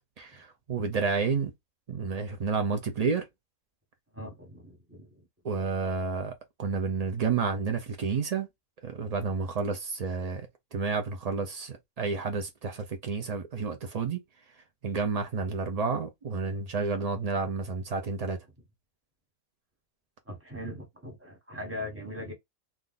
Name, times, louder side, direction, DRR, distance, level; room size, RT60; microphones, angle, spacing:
voice 1, 0.2-1.5 1.9-3.3 5.4-8.5 8.8-14.2 14.8-18.4, right 5 dB, 85° right, 0.3 m, -30 dB
voice 2, 4.1-5.3 20.3-22.3, left 1 dB, 10° right, 1.2 m, -40 dB
2.5 x 2.4 x 3.8 m
omnidirectional pair, 1.5 m